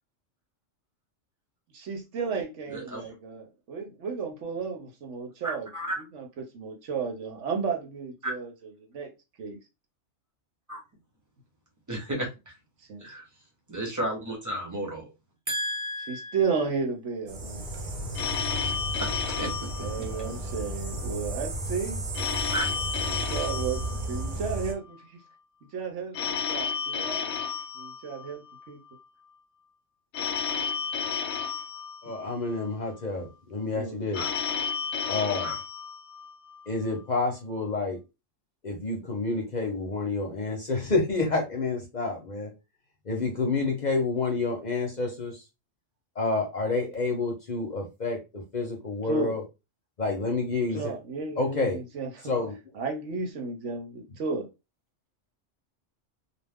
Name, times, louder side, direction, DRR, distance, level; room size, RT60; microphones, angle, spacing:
voice 1, 1.7-5.7 6.0-9.1 9.4-9.6 12.9-13.1 16.1-17.7 19.8-22.0 23.1-25.1 25.7-27.4 27.7-28.8 33.7-34.0 49.0-49.4 50.7-52.3 52.7-54.5, right 5 dB, 75° right, 1.1 m, -33 dB
voice 2, 2.7-3.1 5.4-6.0 8.2-8.3 10.7-10.8 11.9-12.3 13.0-13.2 13.7-15.1 15.5-16.4 19.4-19.5 22.5-22.7 34.1-34.3, right 1 dB, 15° right, 0.9 m, -32 dB
sound 1, 17.3-24.7, right 1 dB, 50° right, 0.7 m, -34 dB
Telephone, 18.1-20.6 22.1-24.6 26.1-28.6 30.1-32.6 34.1-36.6, left 6 dB, 75° left, 0.9 m, -32 dB
voice 3, 32.0-34.2 35.1-35.6 36.7-38.0 38.6-42.5 43.1-45.3 46.2-48.2 48.5-49.4 50.0-50.9 51.4-51.8 52.3-52.5, left 3 dB, 45° left, 0.7 m, -28 dB
2.5 x 2.3 x 3.4 m
omnidirectional pair, 1.2 m